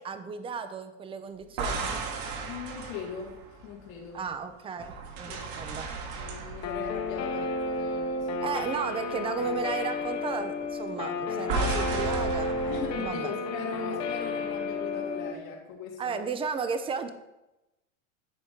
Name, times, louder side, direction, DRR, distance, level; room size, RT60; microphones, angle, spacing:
voice 1, 0.0-2.1 4.1-5.9 8.4-13.3 16.0-17.1, right 5 dB, 15° right, 10 dB, 0.5 m, -34 dB
sound 1, 1.4-4.3 4.8-8.2 8.5-8.8 11.5-13.1, right 3 dB, 65° right, 1.6 m, -35 dB
voice 2, 2.5-4.2 5.3-5.4 6.2-8.5 12.6-16.2, left 5 dB, 80° left, -2 dB, 2.3 m, -39 dB
Guitar, 6.6-15.3, left 3 dB, 40° left, 1.1 m, -32 dB
10.5 x 4.2 x 5.1 m, 0.97 s
supercardioid pair, 135°, 40 cm